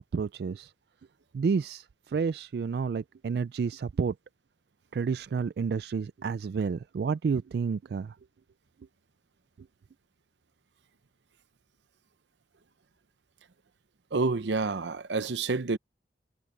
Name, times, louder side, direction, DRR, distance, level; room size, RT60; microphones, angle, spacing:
voice 1, 0.1-0.7 1.3-4.1 4.9-8.1, right 5 dB, 60° right, 0.3 m, -30 dB
voice 2, 14.1-15.8, right 3 dB, 80° right, 0.7 m, -28 dB
head